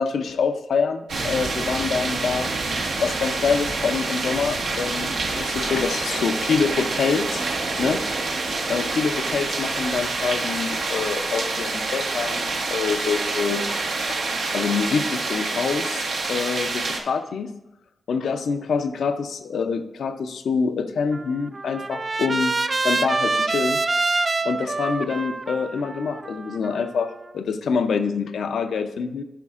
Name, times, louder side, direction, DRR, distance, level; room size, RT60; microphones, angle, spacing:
voice 1, 0.0-2.5 3.0-7.5 7.8-8.0 8.7-13.7 14.1-14.2 14.5-17.5 18.1-22.5 22.8-23.8 24.4-29.2, left 5 dB, 80° left, 8 dB, 0.5 m, -26 dB
sound 1, 1.1-17.0, right 3 dB, 85° right, 1.0 m, -27 dB
Trumpet, 21.1-27.3, right 3 dB, 45° right, 0.4 m, -26 dB
11.5 x 5.3 x 2.4 m, 0.95 s
cardioid pair, 50°, 0 cm